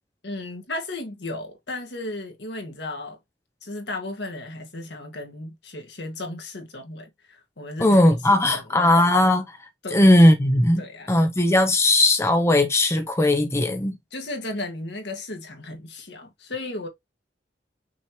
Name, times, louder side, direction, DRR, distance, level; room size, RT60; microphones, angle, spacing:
voice 1, 0.2-3.2 3.6-8.0 8.3-8.9 9.8-10.1 10.8-11.2 14.1-16.9, left 2 dB, 70° left, 1.8 m, -35 dB
voice 2, 7.8-10.8 11.1-14.0, left 1 dB, 15° left, 0.7 m, -18 dB
5.9 x 3.0 x 3.0 m
head